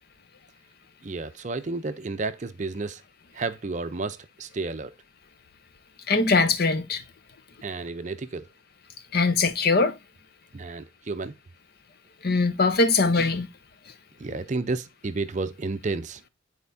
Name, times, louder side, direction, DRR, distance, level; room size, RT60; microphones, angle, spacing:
voice 1, 1.0-3.0 3.3-4.9 7.6-8.5 10.5-11.3 14.2-16.2, right 3 dB, 35° right, 0.5 m, -31 dB
voice 2, 6.1-7.0 9.1-10.0 12.2-13.5, left 3 dB, 50° left, 0.8 m, -21 dB
10.5 x 4.4 x 2.6 m
head